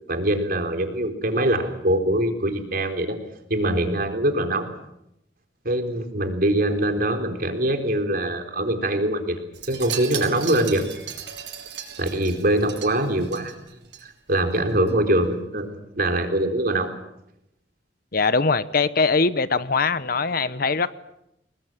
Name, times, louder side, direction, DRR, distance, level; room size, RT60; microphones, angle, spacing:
voice 1, 0.1-3.2 3.5-4.7 5.6-9.4 9.7-10.9 12.0-13.5 14.0-16.9, right 1 dB, 55° right, 5 dB, 3.9 m, -23 dB
Wind chime, 9.5-14.0 14.3-14.6 14.9-15.0, right 9 dB, 75° right, 5.8 m, -36 dB
voice 2, 18.1-20.9, left 4 dB, 55° left, 14 dB, 1.0 m, -22 dB
29.0 x 21.0 x 7.5 m, 0.83 s
head